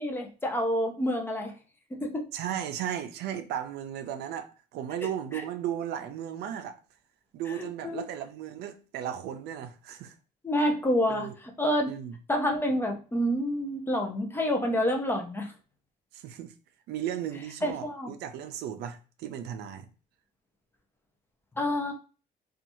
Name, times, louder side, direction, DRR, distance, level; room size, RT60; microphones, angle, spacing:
voice 1, 0.0-1.5 1.9-2.3 5.0-5.1 7.6-8.0 10.4-11.3 11.6-11.9 12.3-15.5 17.6-18.1 21.6-21.9, equal, 15° left, 0.6 m, -28 dB
voice 2, 2.3-6.8 7.3-10.1 11.1-11.3 11.9-12.1 16.1-16.5 16.9-19.9, right 10 dB, 75° right, 0.4 m, -35 dB
2.7 x 2.4 x 2.6 m
cardioid pair, 110°, 17 cm